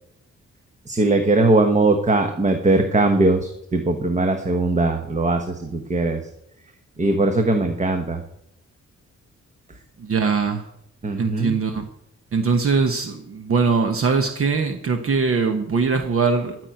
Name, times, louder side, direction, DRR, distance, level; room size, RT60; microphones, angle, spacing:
voice 1, 0.9-6.2 7.0-8.2 11.0-11.6, right 2 dB, 25° right, 6 dB, 1.1 m, -20 dB
voice 2, 10.0-10.6 11.2-11.8 12.3-16.6, right 5 dB, 50° right, 6 dB, 1.1 m, -21 dB
13.0 x 6.2 x 9.3 m, 0.78 s
wide cardioid pair, 145°, 29 cm